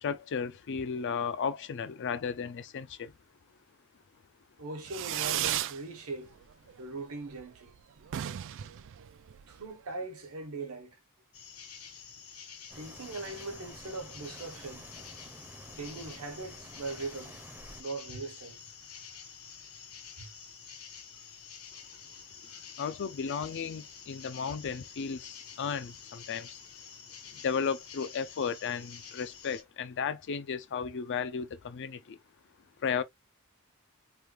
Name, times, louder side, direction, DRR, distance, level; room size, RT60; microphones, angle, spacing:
voice 1, 0.0-3.1 22.8-26.6 27.3-32.2 32.8-33.0, left 6 dB, 55° left, 0.4 m, -34 dB
voice 2, 4.6-6.3 6.8-8.1 9.0-9.1 9.5-11.0 12.7-15.1 15.8-17.4 17.8-18.7 20.2-20.3 22.5-22.6, right 3 dB, 80° right, 1.1 m, -40 dB
Fireworks, 4.9-5.8 6.2-6.7 7.0-7.1 7.3-7.4 7.7-7.8 8.0-9.7, right 12 dB, 60° right, 0.3 m, -34 dB
sound 1, 11.3-29.6, left 7 dB, 75° left, 1.0 m, -49 dB
sound 2, 12.7-17.8, right 1 dB, 10° right, 0.6 m, -51 dB
3.4 x 2.3 x 3.0 m
head